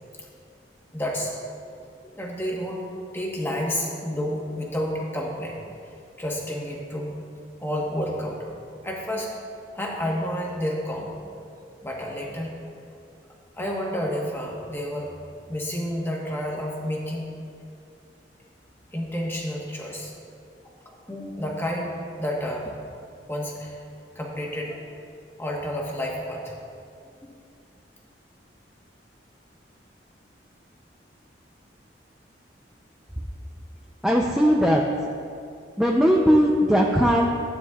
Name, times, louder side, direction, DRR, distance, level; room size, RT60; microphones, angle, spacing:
voice 1, 0.9-1.4 2.0-2.9 3.1-5.6 6.2-7.2 7.6-8.4 8.8-9.3 9.7-11.2 11.8-12.6 13.6-15.1 15.5-17.3 18.9-20.1 21.1-22.7 23.3-23.8 24.1-24.8 25.4-26.5 27.2-27.4, equal, 15° left, -2 dB, 1.3 m, -30 dB
voice 2, 34.0-34.8 35.8-37.4, equal, 5° right, -2 dB, 0.5 m, -19 dB
14.5 x 9.0 x 2.4 m, 2.4 s
head